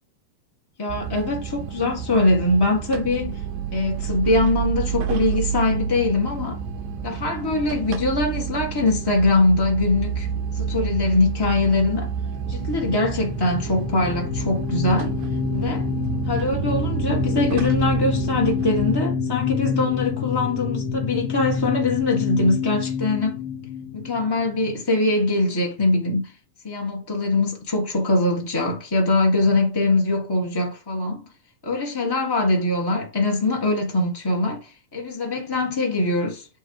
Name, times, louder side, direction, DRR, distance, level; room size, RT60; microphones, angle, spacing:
voice 1, 0.8-3.4 3.7-6.6 7.0-10.3 10.5-12.1 12.5-15.1 15.5-15.9 16.3-23.4 23.9-26.3 26.6-31.2 31.6-36.5, left 2 dB, 30° left, 0.4 m, -22 dB
sound 1, 0.9-18.9, right 8 dB, 90° right, 2.5 m, -29 dB
sound 2, 12.3-24.8, left 5 dB, 80° left, 1.0 m, -27 dB
7.6 x 3.6 x 4.7 m
omnidirectional pair, 3.4 m